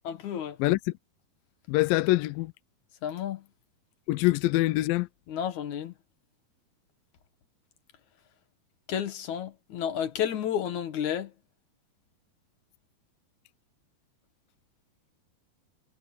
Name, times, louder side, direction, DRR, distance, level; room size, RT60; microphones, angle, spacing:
voice 1, 0.1-0.6 3.0-3.4 5.3-5.9 8.9-11.3, left 9 dB, 60° left, 2.7 m, -31 dB
voice 2, 0.6-0.9 1.7-2.5 4.1-5.1, left 18 dB, 85° left, 2.4 m, -24 dB
omnidirectional pair, 4.0 m